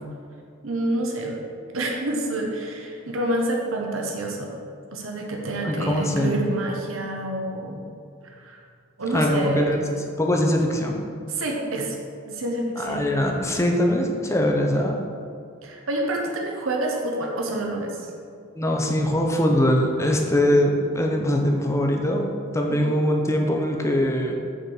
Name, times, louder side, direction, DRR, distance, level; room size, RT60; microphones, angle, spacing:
voice 1, 0.6-1.4 1.7-4.5 4.9-7.9 8.2-8.6 9.0-9.8 11.3-12.0 12.3-13.3 15.6-18.1 22.7-23.0, right 1 dB, 80° right, 0 dB, 0.9 m, -28 dB
voice 2, 5.6-6.4 9.1-9.8 10.2-11.0 12.8-15.0 18.6-22.2 22.5-24.4, left 1 dB, 15° left, 1 dB, 0.7 m, -22 dB
6.5 x 4.4 x 6.3 m, 2.3 s
head